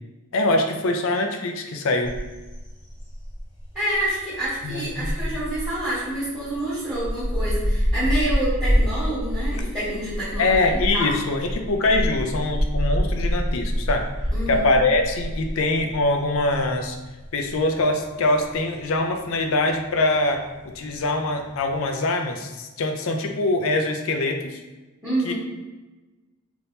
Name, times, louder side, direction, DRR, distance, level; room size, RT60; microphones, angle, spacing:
voice 1, 0.3-2.2 4.6-5.1 10.4-14.1 14.5-17.0 17.3-24.6 25.2-25.3, left 2 dB, 65° left, 5 dB, 0.4 m, -23 dB
sound 1, 2.0-21.8, equal, 20° left, 0.7 m, -27 dB
voice 2, 3.7-11.2 14.3-14.7 25.0-25.3, right 1 dB, 10° right, -14 dB, 1.5 m, -28 dB
3.4 x 2.9 x 2.7 m, 1.2 s
head